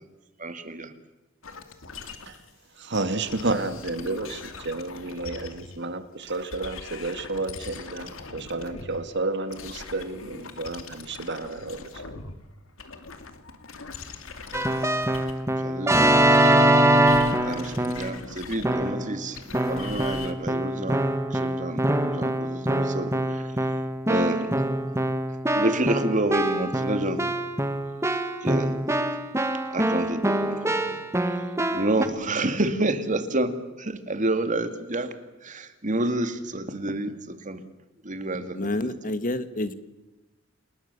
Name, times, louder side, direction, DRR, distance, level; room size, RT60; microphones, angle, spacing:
voice 1, 0.4-0.9 15.6-16.8 17.4-19.4 19.7-23.7 24.1-24.5 25.5-27.2 28.4-28.8 29.7-31.0 31.7-35.1 35.4-37.6 38.0-39.1, right 1 dB, 40° right, 2.4 m, -29 dB
sound 1, 1.4-2.5 2.9-5.9 6.2-12.4 12.7-15.6 16.1-20.3, left 4 dB, 85° left, 2.6 m, -41 dB
voice 2, 2.8-11.8, right 2 dB, 60° right, 2.2 m, -31 dB
Keyboard (musical), 14.5-18.2 18.6-19.1 19.5-32.1, right 1 dB, 15° right, 1.7 m, -24 dB
voice 3, 38.5-39.7, left 1 dB, 40° left, 1.6 m, -28 dB
29.0 x 20.5 x 7.0 m
head